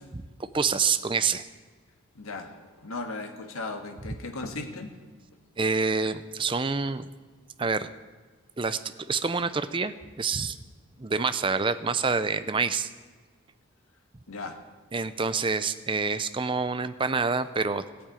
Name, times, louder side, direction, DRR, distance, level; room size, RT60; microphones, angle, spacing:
voice 1, 0.1-1.5 5.6-7.1 7.6-7.9 8.6-8.8 9.1-10.6 11.0-12.9 14.9-17.8, right 4 dB, 25° right, 12 dB, 0.5 m, -27 dB
voice 2, 2.1-4.9 14.3-14.6, left 3 dB, 90° left, 4 dB, 1.6 m, -37 dB
14.0 x 8.7 x 9.0 m, 1.4 s
head